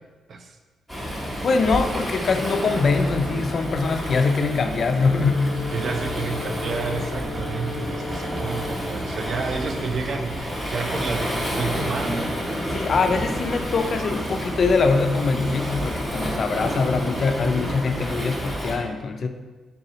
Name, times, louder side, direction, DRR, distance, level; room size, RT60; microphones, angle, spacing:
Waves surf, 0.9-18.8, equal, 15° right, 1.0 m, -29 dB
voice 1, 1.4-5.6 12.7-19.3, left 4 dB, 50° left, 7 dB, 0.3 m, -23 dB
Brass instrument, 4.7-8.9, left 2 dB, 35° right, 1.3 m, -35 dB
voice 2, 5.7-12.3, right 4 dB, 55° right, 5 dB, 0.4 m, -30 dB
3.9 x 2.8 x 3.8 m, 1.3 s
cardioid pair, 100°, 0 cm